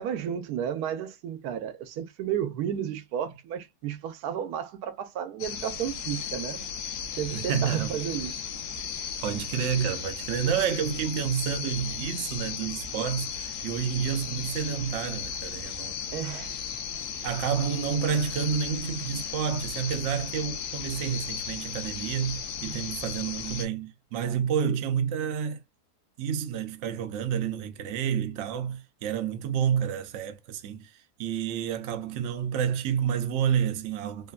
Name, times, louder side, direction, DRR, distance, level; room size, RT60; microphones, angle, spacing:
voice 1, 0.0-6.6 7.2-8.4 16.1-16.6, right 9 dB, 85° right, 1.1 m, -32 dB
sound 1, 5.4-23.7, left 7 dB, 90° left, 1.1 m, -36 dB
voice 2, 7.3-8.0 9.2-16.0 17.2-25.6 26.2-30.9 31.2-34.3, right 8 dB, 65° right, 0.8 m, -29 dB
3.2 x 2.2 x 2.3 m
omnidirectional pair, 1.6 m